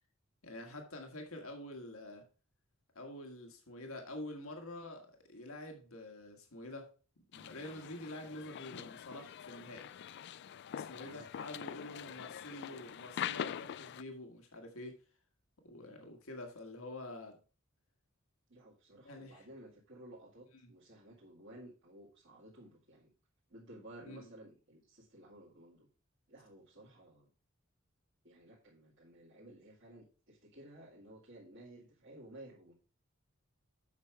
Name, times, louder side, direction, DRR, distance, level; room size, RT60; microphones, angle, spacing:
voice 1, 0.4-2.3 2.9-6.9 7.3-9.9 10.7-15.0 15.6-17.4 19.0-19.5 20.6-20.7 24.0-24.3, left 1 dB, 85° left, 1.5 m, -47 dB
sound 1, 7.3-14.0, left 9 dB, 55° left, 0.3 m, -44 dB
voice 2, 11.0-11.6 12.0-12.4 18.5-23.1 23.5-25.9 26.3-27.3 28.2-32.7, right 1 dB, 60° right, 2.0 m, -55 dB
8.3 x 6.1 x 4.6 m
head